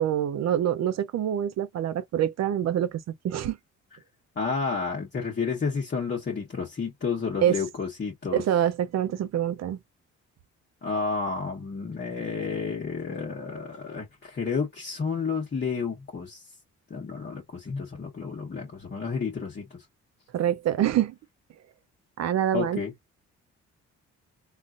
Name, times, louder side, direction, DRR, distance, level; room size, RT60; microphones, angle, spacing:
voice 1, 0.0-2.9 3.2-3.6 7.4-7.6 8.3-9.8 20.3-21.1 22.2-22.8, right 10 dB, 60° right, 0.6 m, -25 dB
voice 2, 4.4-8.4 10.8-16.4 16.9-19.8 22.5-22.9, left 5 dB, 35° left, 1.1 m, -31 dB
3.7 x 2.4 x 2.4 m
cardioid pair, 90°, 30 cm